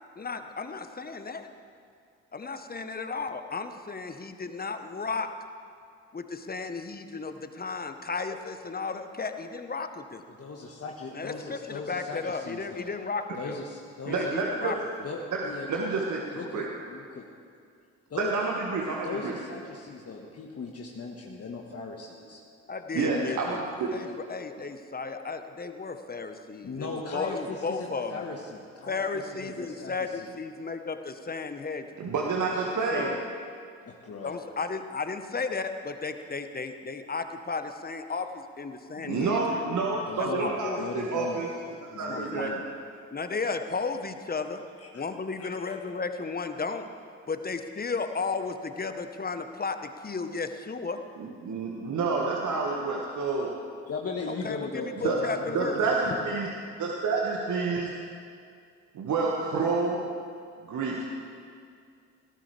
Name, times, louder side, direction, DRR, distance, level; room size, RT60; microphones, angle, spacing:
voice 1, 0.2-1.5 2.3-5.3 6.1-10.2 11.1-13.6 14.1-15.1 22.7-23.6 23.9-28.2 28.9-32.1 32.9-33.2 34.2-39.7 40.2-40.9 42.1-42.5 43.1-44.6 44.9-46.9 47.3-51.0 54.3-55.8, left 4 dB, 25° left, 8 dB, 1.3 m, -34 dB
voice 2, 10.4-12.9 13.4-14.4 15.0-15.9 16.3-17.3 18.1-18.3 19.0-22.4 23.1-23.6 23.8-24.1 26.6-30.4 32.5-32.7 33.8-34.5 39.6-39.8 40.1-41.5 41.9-42.6 44.8-45.0 45.4-45.8 53.9-56.2, left 4 dB, 40° left, 0 dB, 1.7 m, -38 dB
voice 3, 14.1-14.7 15.7-16.2 16.5-16.6 18.2-19.4 23.0-23.9 32.0-33.1 39.0-40.7 41.1-41.5 42.0-42.5 51.2-53.5 55.0-55.2 55.5-56.5 56.8-57.9 58.9-60.0 60.7-61.1, right 4 dB, 50° right, -2 dB, 1.9 m, -28 dB
20.0 x 17.0 x 3.5 m, 2.3 s
figure-of-eight pair, 45°, 37 cm